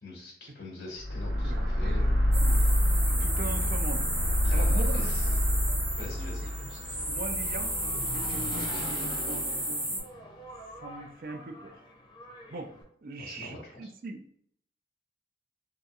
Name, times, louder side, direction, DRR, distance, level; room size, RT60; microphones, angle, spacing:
voice 1, 0.0-2.1 2.6-2.7 4.4-5.4 6.0-7.1 13.2-13.9, left 2 dB, 70° left, -3 dB, 1.2 m, -43 dB
sound 1, 1.0-9.3, equal, 80° right, 0.8 m, -27 dB
voice 2, 1.4-2.7 3.1-4.0 4.5-5.1 7.1-10.0 10.8-11.8 12.5-12.7 13.0-14.2, right 3 dB, 50° right, 5 dB, 0.4 m, -41 dB
sound 2, 2.3-10.0, right 1 dB, 15° right, 0.7 m, -33 dB
Engine, 4.0-12.8, left 1 dB, 25° left, 0.5 m, -44 dB
3.0 x 2.7 x 2.4 m, 0.64 s
head